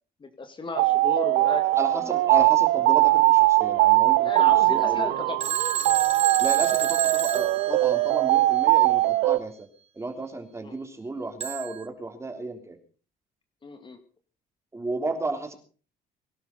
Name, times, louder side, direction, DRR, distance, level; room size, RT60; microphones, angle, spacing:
voice 1, 0.2-1.6 1.9-2.2 4.2-5.5 10.6-10.8 13.6-14.0, left 4 dB, 30° left, 7 dB, 2.3 m, -34 dB
sound 1, 0.7-9.4, right 18 dB, 85° right, 0.7 m, -21 dB
voice 2, 1.8-5.1 6.4-9.7 9.9-12.8 14.7-15.5, right 3 dB, 15° right, 6 dB, 3.5 m, -33 dB
Telephone, 5.4-8.4 11.4-11.9, right 8 dB, 40° right, 1.2 m, -30 dB
23.5 x 12.0 x 4.0 m, 0.37 s
cardioid pair, 110°, 17 cm